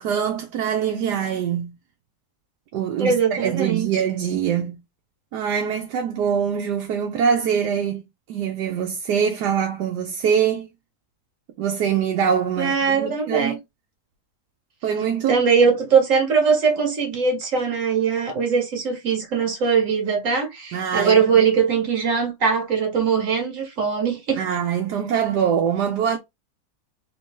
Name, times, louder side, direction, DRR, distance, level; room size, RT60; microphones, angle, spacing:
voice 1, 0.0-1.7 2.7-4.8 5.3-8.0 8.3-10.7 11.6-13.6 14.8-15.7 20.7-21.4 24.3-26.2, right 8 dB, 85° right, 1.3 m, -24 dB
voice 2, 3.0-3.9 12.6-13.5 15.3-24.4, right 6 dB, 55° right, 1.7 m, -21 dB
3.8 x 2.6 x 3.6 m
omnidirectional pair, 1.7 m